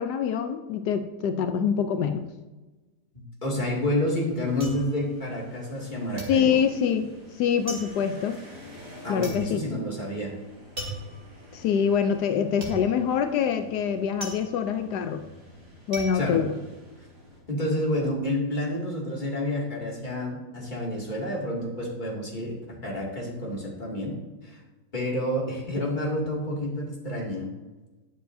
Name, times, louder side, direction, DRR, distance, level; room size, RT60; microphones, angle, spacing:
voice 1, 0.0-2.3 6.3-7.1 7.4-8.4 9.1-9.6 11.5-15.2 15.9-16.5, left 7 dB, 85° left, 7 dB, 1.2 m, -25 dB
voice 2, 3.1-6.5 9.0-10.3 16.1-16.4 17.5-22.6 22.8-24.2 24.4-24.6 24.9-27.5, left 1 dB, 30° left, -3 dB, 2.5 m, -29 dB
sound 1, 3.7-5.9 6.2-17.3 17.6-18.2, right 1 dB, 40° right, 2.7 m, -40 dB
sound 2, 4.1-17.4, left 1 dB, 90° right, 4.5 m, -50 dB
20.5 x 6.9 x 2.7 m, 1.2 s
omnidirectional pair, 1.7 m